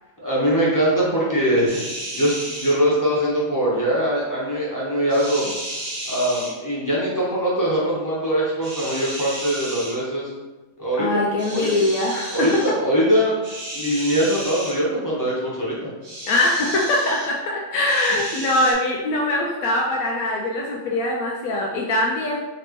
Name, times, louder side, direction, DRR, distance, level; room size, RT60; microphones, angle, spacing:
voice 1, 0.2-1.8 2.2-5.4 6.1-10.3 10.8-11.1 11.5-11.7 12.3-13.4 13.7-15.9, equal, 15° left, -7 dB, 1.0 m, -22 dB
sound 1, 1.7-2.8 5.1-6.5 8.6-10.0 11.4-12.7 13.4-14.8 16.0-17.3 17.9-18.7, right 1 dB, 70° right, 1.5 m, -33 dB
voice 2, 11.0-12.6 16.3-22.4, left 1 dB, 80° left, -2 dB, 1.0 m, -22 dB
4.1 x 2.9 x 3.0 m, 1.2 s
omnidirectional pair, 1.5 m